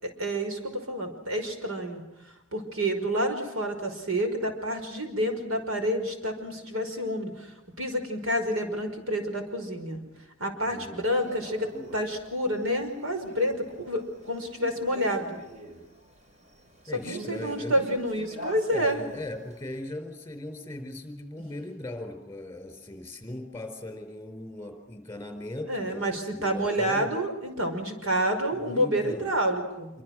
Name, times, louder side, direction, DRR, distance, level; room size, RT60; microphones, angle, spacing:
voice 1, 0.0-2.0 2.5-10.0 10.4-15.4 16.9-19.0 25.7-29.9, equal, 90° right, 5 dB, 5.5 m, -29 dB
voice 2, 10.6-11.1 16.9-17.8 18.7-27.1 28.5-29.3 29.9-30.0, left 1 dB, 10° left, 6 dB, 4.2 m, -39 dB
Male speech man speaking, 11.2-19.8, right 1 dB, 35° right, 3.3 m, -45 dB
26.5 x 25.0 x 6.3 m, 1.0 s
head